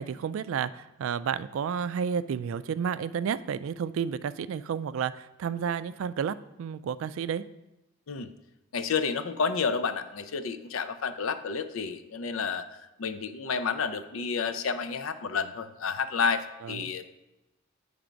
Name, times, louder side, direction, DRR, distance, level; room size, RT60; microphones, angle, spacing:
voice 1, 0.0-7.4 16.6-16.9, right 7 dB, 75° right, 15 dB, 0.3 m, -31 dB
voice 2, 8.7-12.6 13.0-17.1, left 5 dB, 80° left, 11 dB, 0.5 m, -30 dB
8.8 x 3.4 x 5.1 m, 0.98 s
head